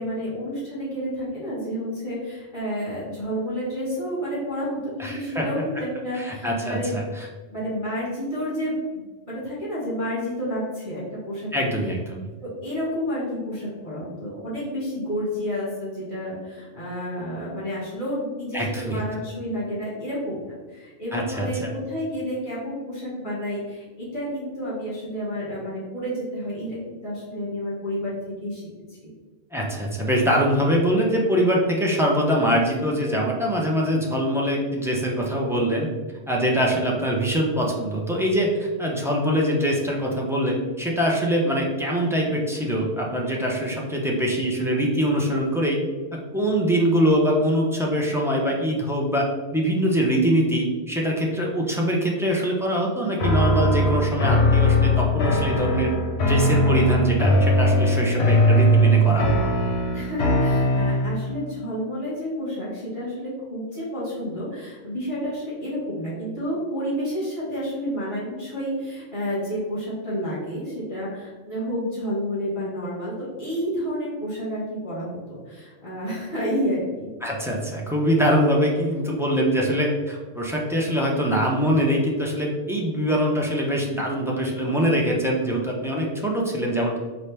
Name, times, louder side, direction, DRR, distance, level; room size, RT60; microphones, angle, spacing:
voice 1, 0.0-7.0 7.5-11.5 12.4-28.1 28.4-28.6 29.0-29.1 59.9-77.1, equal, 45° left, -7 dB, 1.6 m, -30 dB
voice 2, 5.0-5.4 6.1-7.3 11.5-12.3 18.5-19.0 21.1-21.7 29.5-35.9 36.3-45.8 46.1-49.2 49.5-55.9 56.3-59.3 77.2-87.0, equal, 5° right, -3 dB, 0.3 m, -23 dB
sound 1, 53.2-61.3, equal, 65° left, 0.9 m, -20 dB
4.3 x 2.7 x 3.3 m, 1.3 s
omnidirectional pair, 1.2 m